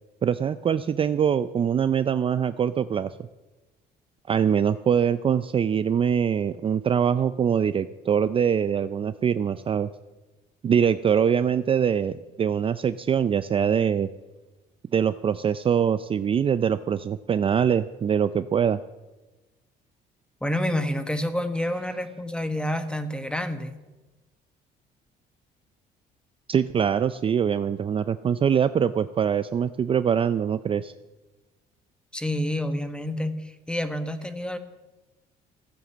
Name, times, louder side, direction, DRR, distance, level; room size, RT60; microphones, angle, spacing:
voice 1, 0.2-3.2 4.3-9.9 10.6-14.1 14.9-18.8 26.5-30.9, right 8 dB, 30° right, 13 dB, 0.4 m, -23 dB
voice 2, 20.4-23.7 32.1-34.6, left 1 dB, 5° left, 9 dB, 1.3 m, -28 dB
14.5 x 9.2 x 7.3 m, 1.2 s
cardioid pair, 110°, 17 cm